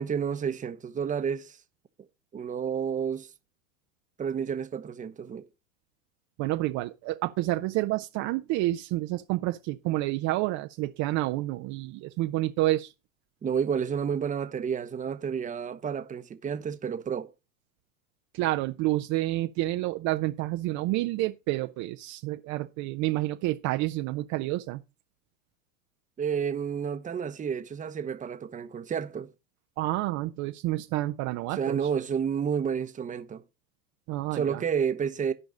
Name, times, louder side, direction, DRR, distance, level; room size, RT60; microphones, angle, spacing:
voice 1, 0.0-1.6 2.3-3.3 4.2-5.5 13.4-17.3 26.2-29.3 31.5-33.4 34.3-35.3, right 7 dB, 20° right, 1.0 m, -30 dB
voice 2, 6.4-12.9 18.3-24.8 29.8-31.8 34.1-34.6, right 17 dB, 45° right, 0.7 m, -29 dB
12.5 x 5.2 x 5.0 m
hypercardioid pair, 100°, 42 cm